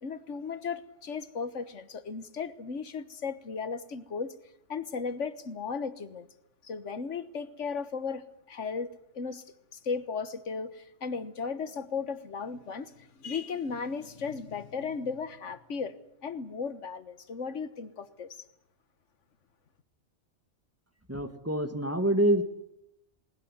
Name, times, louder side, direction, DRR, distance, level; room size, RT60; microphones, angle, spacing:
voice 1, 0.0-4.3 4.7-6.3 6.6-9.4 9.7-15.9 16.2-18.4, left 5 dB, 85° left, 1.6 m, -36 dB
voice 2, 21.1-22.4, right 1 dB, 10° right, 1.8 m, -26 dB
20.0 x 19.5 x 9.8 m
omnidirectional pair, 1.2 m